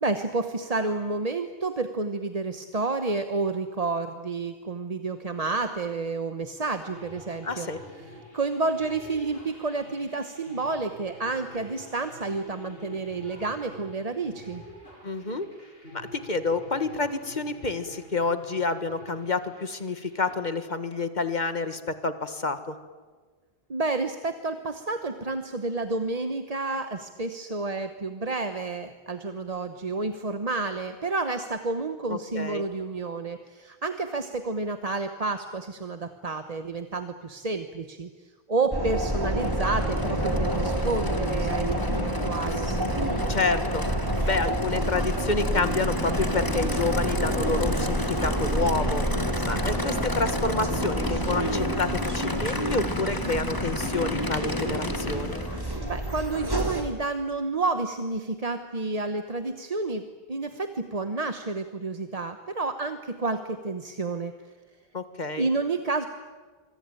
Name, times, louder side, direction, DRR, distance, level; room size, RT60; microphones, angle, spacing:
voice 1, 0.0-7.7 8.3-14.6 23.7-42.7 55.8-64.3 65.4-66.1, right 3 dB, 40° right, 8 dB, 1.1 m, -30 dB
sound 1, 6.8-20.4, equal, 70° left, 7.9 m, -47 dB
voice 2, 7.4-7.8 15.0-15.5 15.9-22.8 32.1-32.6 43.3-43.8 44.3-49.0 49.4-55.4 64.9-65.5, left 3 dB, 45° left, 10 dB, 1.8 m, -29 dB
sound 2, 38.7-56.8, right 1 dB, 20° right, 3.3 m, -28 dB
Aircraft / Idling, 38.9-55.8, left 2 dB, 20° left, 1.5 m, -34 dB
25.5 x 23.5 x 9.0 m, 1.4 s
omnidirectional pair, 1.0 m